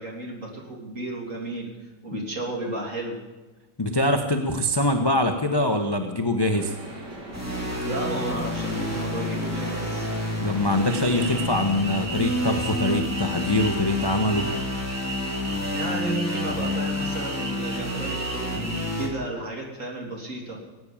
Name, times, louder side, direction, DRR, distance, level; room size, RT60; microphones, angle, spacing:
voice 1, 0.0-3.2 7.8-10.1 15.7-20.6, right 1 dB, 40° right, 0 dB, 3.4 m, -33 dB
voice 2, 3.8-6.7 10.4-14.5, left 1 dB, 25° left, 5 dB, 0.6 m, -23 dB
sound 1, 6.5-11.5, right 1 dB, 60° right, 3.3 m, -39 dB
sound 2, 7.3-19.1, left 1 dB, 5° right, 2.5 m, -29 dB
sound 3, 10.9-18.9, right 2 dB, 80° right, 3.1 m, -36 dB
18.0 x 9.5 x 7.2 m, 1.2 s
omnidirectional pair, 2.2 m